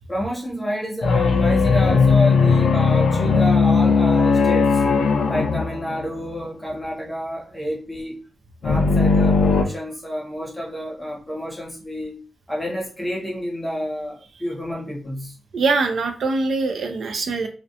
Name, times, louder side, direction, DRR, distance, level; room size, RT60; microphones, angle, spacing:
voice 1, 0.1-4.8 5.3-8.2 8.6-12.2 12.5-15.4, equal, 5° left, 0.8 m, -29 dB
sound 1, 1.0-6.5 8.6-9.6, left 4 dB, 80° left, 0.4 m, -18 dB
voice 2, 15.5-17.5, right 3 dB, 65° right, 0.3 m, -23 dB
2.4 x 2.1 x 2.6 m
wide cardioid pair, 165°, 0 cm